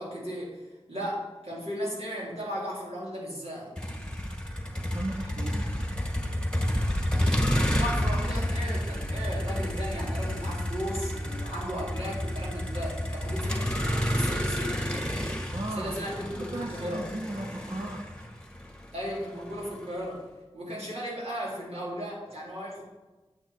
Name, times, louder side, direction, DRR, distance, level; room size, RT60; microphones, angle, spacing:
voice 1, 0.0-3.7 7.6-14.8 15.8-17.1 18.9-20.3 20.5-22.8, equal, 70° right, -5 dB, 3.8 m, -36 dB
Motor vehicle (road), 3.8-19.9, equal, 10° left, 1.3 m, -30 dB
voice 2, 4.9-6.0 15.5-16.0 16.3-18.1, right 1 dB, 55° right, 0 dB, 1.1 m, -36 dB
9.0 x 8.5 x 4.6 m, 1.2 s
wide cardioid pair, 45°, 11 cm